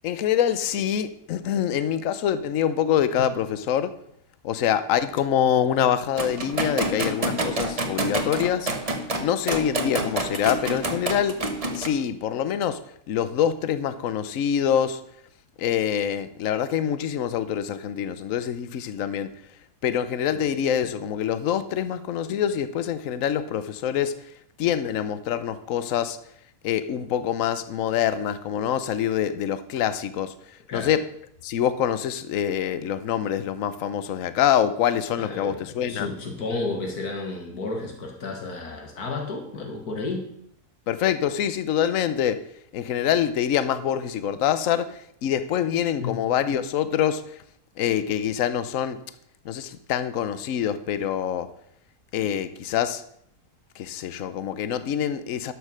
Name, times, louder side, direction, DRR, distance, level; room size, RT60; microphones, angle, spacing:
voice 1, 0.0-3.9 4.4-8.7 9.2-11.4 11.7-12.8 13.1-15.0 15.6-19.3 19.8-24.1 24.6-26.2 26.6-30.3 30.7-31.0 31.4-36.1 40.9-42.4 42.7-44.9 45.2-47.2 47.8-49.0 49.4-51.5 52.1-53.0 53.8-55.5, left 9 dB, 65° left, 13 dB, 1.1 m, -25 dB
sound 1, 6.2-11.9, right 2 dB, 25° right, 1.1 m, -27 dB
voice 2, 35.2-35.6 35.9-40.2 46.0-46.2, left 3 dB, 90° left, 2 dB, 2.3 m, -32 dB
12.0 x 6.6 x 6.4 m, 0.70 s
omnidirectional pair, 1.6 m